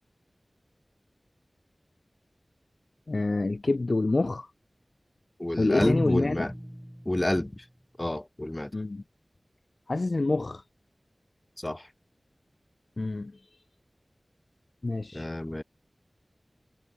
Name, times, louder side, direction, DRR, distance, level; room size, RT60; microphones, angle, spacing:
voice 1, 3.1-4.5 5.6-6.5 8.7-9.0 9.9-10.6 13.0-13.3 14.8-15.3, left 2 dB, 60° left, 0.6 m, -27 dB
voice 2, 5.4-6.5 7.1-7.6 8.0-8.7 11.6-11.9 15.1-15.6, left 1 dB, 25° left, 1.8 m, -29 dB
sound 1, 5.8-7.8, equal, 5° right, 2.5 m, -39 dB
wide cardioid pair, 60°, 0 cm